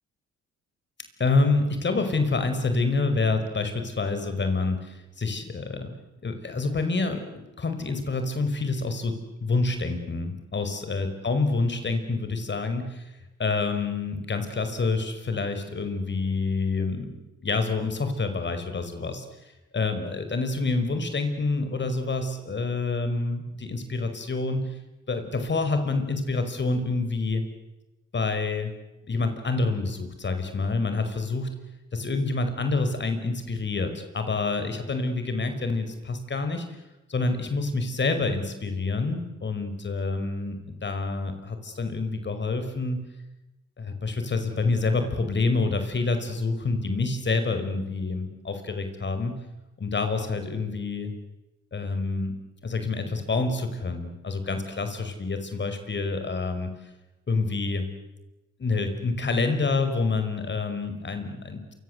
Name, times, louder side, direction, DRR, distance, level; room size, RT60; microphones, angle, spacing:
voice 1, 1.2-5.9 6.2-13.0 13.4-19.3 19.7-24.8 25.1-27.4 28.1-28.7 29.1-31.5 31.9-36.7 37.1-43.0 43.8-49.4 49.8-51.2 51.7-52.4 52.6-56.7 57.3-57.9 58.6-61.6, left 3 dB, 35° left, 8 dB, 5.3 m, -27 dB
28.0 x 25.0 x 8.1 m, 1.0 s
cardioid pair, 90°, 30 cm